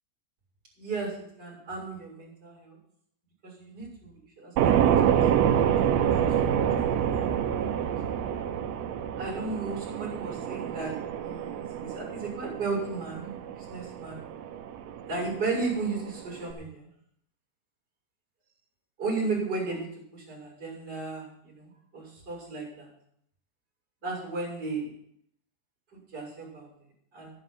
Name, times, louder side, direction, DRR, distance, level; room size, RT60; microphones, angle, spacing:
voice 1, 0.8-2.8 3.4-5.7 6.0-7.8 9.2-14.2 15.1-16.9 19.0-22.9 24.0-24.9 25.9-26.7 27.1-27.3, right 3 dB, 25° right, -4 dB, 6.9 m, -35 dB
sound 1, 4.6-16.5, right 9 dB, 85° right, 1.5 m, -27 dB
11.0 x 10.5 x 6.1 m, 0.71 s
omnidirectional pair, 4.0 m